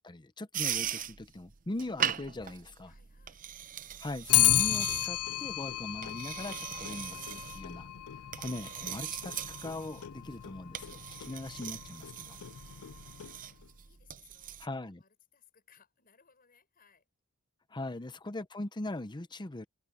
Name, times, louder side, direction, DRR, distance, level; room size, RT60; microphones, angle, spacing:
voice 1, 0.0-2.9 4.0-7.9 8.4-12.4 14.6-15.0 17.7-19.7, left 2 dB, 20° left, 0.7 m, -40 dB
sound 1, 0.5-14.7, right 10 dB, 40° right, 0.6 m, -40 dB
voice 2, 2.8-3.5 13.3-17.1 17.7-18.2, left 7 dB, 45° left, 6.9 m, -66 dB
Clock, 4.3-13.7, left 15 dB, 85° left, 0.5 m, -33 dB
head